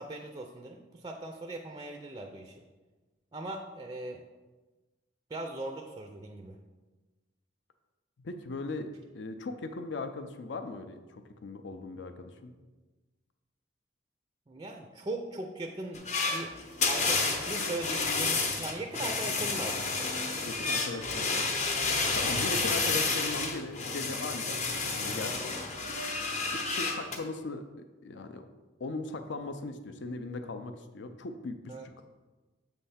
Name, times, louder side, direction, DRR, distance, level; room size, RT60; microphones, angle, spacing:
voice 1, 0.0-2.6 3.3-4.2 5.3-6.6 14.5-19.9 31.7-31.9, right 2 dB, 20° right, 4 dB, 0.4 m, -39 dB
voice 2, 8.2-12.5 20.4-21.5 22.1-25.5 26.5-27.6 28.0-28.5 28.8-32.0, left 3 dB, 70° left, 8 dB, 0.5 m, -39 dB
sound 1, 15.9-27.2, left 3 dB, 35° left, 0.7 m, -30 dB
7.1 x 3.3 x 5.6 m, 1.2 s
head